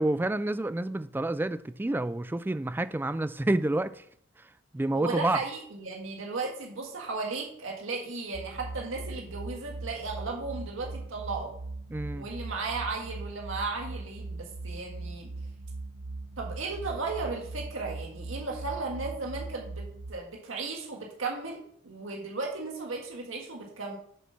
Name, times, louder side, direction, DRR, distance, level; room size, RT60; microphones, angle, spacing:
voice 1, 0.0-4.0 4.7-5.4 11.9-12.3, right 2 dB, 10° right, 0.3 m, -28 dB
voice 2, 4.9-11.5 12.1-15.3 16.4-24.0, right 3 dB, 90° right, 1.8 m, -35 dB
sound 1, 8.3-20.1, right 2 dB, 65° right, 0.9 m, -40 dB
7.6 x 6.8 x 5.6 m
head